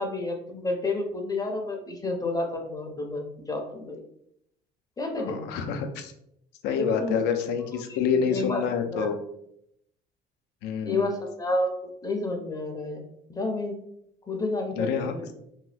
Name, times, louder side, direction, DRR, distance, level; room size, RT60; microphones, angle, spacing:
voice 1, 0.0-4.0 5.0-5.4 6.8-7.1 7.9-8.6 8.9-9.1 10.8-11.7 12.0-13.0 13.3-13.8 14.3-15.3, left 2 dB, 20° left, 3 dB, 0.5 m, -30 dB
voice 2, 5.3-6.1 6.6-9.2 10.6-11.1 14.8-15.1, left 6 dB, 85° left, 7 dB, 0.5 m, -27 dB
2.8 x 2.2 x 3.2 m, 0.74 s
cardioid pair, 110°, 17 cm